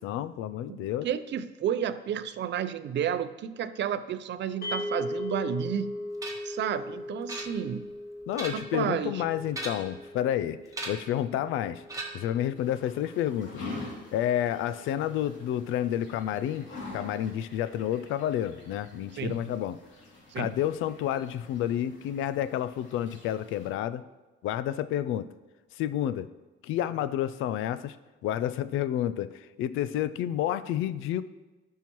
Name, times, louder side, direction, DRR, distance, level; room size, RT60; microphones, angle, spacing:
voice 1, 0.0-1.1 8.3-10.6 10.9-11.8 12.1-13.7 14.1-16.7 16.9-19.8 20.4-24.0 24.4-25.3 25.8-26.3 26.6-28.0 28.2-31.2, left 11 dB, 90° left, 15 dB, 0.4 m, -30 dB
voice 2, 1.0-6.0 6.4-7.9 8.5-9.2 19.2-19.4 20.3-20.5, right 9 dB, 65° right, 12 dB, 0.5 m, -31 dB
sound 1, 4.6-14.9, left 1 dB, 50° left, 1.8 m, -40 dB
sound 2, 6.2-6.6 7.3-7.9 8.2-8.8 9.5-10.0 10.7-11.2 11.9-12.4, right 2 dB, 15° right, 1.4 m, -38 dB
sound 3, 12.5-23.7, left 3 dB, 70° left, 2.7 m, -46 dB
12.0 x 5.6 x 3.0 m, 1.2 s
cardioid pair, 90°, 20 cm